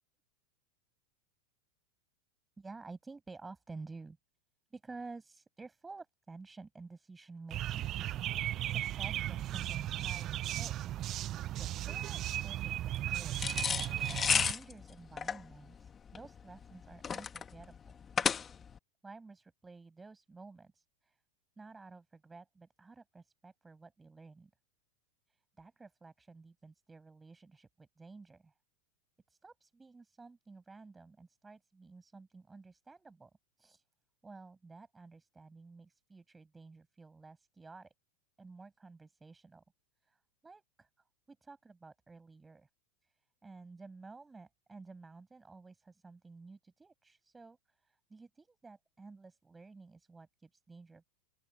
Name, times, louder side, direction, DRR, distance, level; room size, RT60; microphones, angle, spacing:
voice 1, 2.6-4.2 4.7-7.9 8.7-13.9 14.3-17.9 19.0-21.2 21.6-24.5 25.3-28.5 29.3-33.3 33.6-33.8 34.2-37.9 38.4-39.6 40.0-40.9 41.3-42.7 43.0-43.1 43.4-51.0, right 3 dB, 10° right, 7.0 m, -52 dB
sound 1, 7.5-14.5, right 13 dB, 35° right, 0.5 m, -36 dB
sound 2, 13.4-18.8, left 7 dB, 20° left, 1.3 m, -33 dB
open air
supercardioid pair, 145°, 0 cm